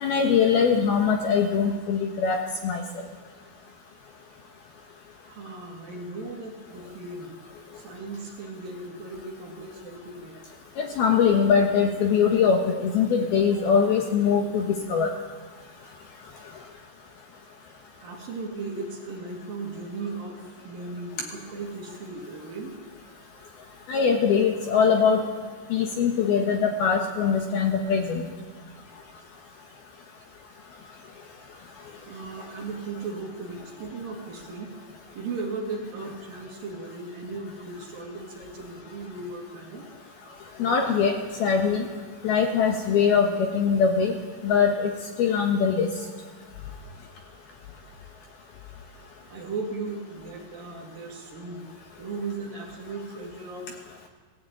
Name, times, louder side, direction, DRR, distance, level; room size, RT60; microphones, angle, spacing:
voice 1, 0.0-2.8 10.8-15.1 23.9-25.2 25.7-28.2 40.6-41.1 41.4-41.8 42.2-44.1 44.4-44.9 45.2-45.9, left 6 dB, 65° left, 3 dB, 2.7 m, -22 dB
voice 2, 5.2-7.3 7.7-10.3 15.1-15.2 16.2-16.3 16.6-16.7 18.0-22.8 23.0-23.4 32.1-34.7 35.1-39.9 49.3-51.7 52.0-53.7, right 3 dB, 50° right, 0 dB, 3.7 m, -37 dB
17.5 x 16.0 x 9.1 m, 1.5 s
omnidirectional pair, 5.7 m